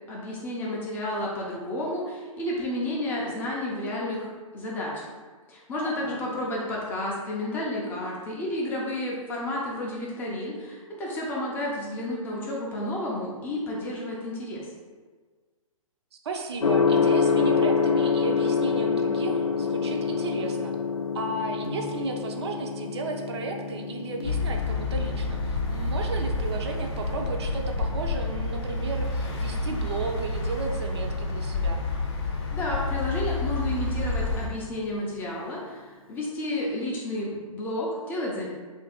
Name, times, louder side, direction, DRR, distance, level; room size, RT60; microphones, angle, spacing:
voice 1, 0.1-5.0 5.5-14.7 32.5-38.5, left 1 dB, 10° left, -4 dB, 0.4 m, -31 dB
voice 2, 16.2-20.7 21.1-31.8, right 3 dB, 50° right, 2 dB, 0.5 m, -34 dB
Gong, 16.6-34.5, left 5 dB, 80° left, 0.4 m, -29 dB
sound 1, 24.2-34.5, left 2 dB, 50° left, 0.7 m, -29 dB
3.0 x 2.5 x 4.2 m, 1.5 s
figure-of-eight pair, 120°, 18 cm